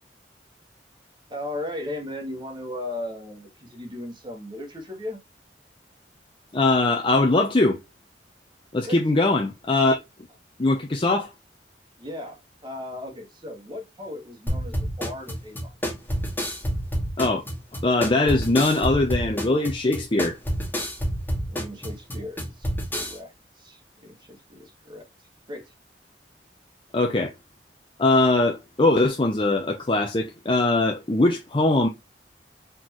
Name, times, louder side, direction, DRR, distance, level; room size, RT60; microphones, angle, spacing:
voice 1, 1.3-5.2 8.8-8.9 12.0-15.7 21.5-25.0 25.5-25.7, left 1 dB, 25° right, 1.7 m, -37 dB
voice 2, 6.5-7.8 8.7-10.0 10.6-11.3 17.2-17.4 17.8-20.4 26.9-27.3 28.0-31.9, left 2 dB, 30° left, 0.7 m, -21 dB
sound 1, 14.5-23.2, equal, 10° left, 2.2 m, -28 dB
4.5 x 3.9 x 2.9 m
head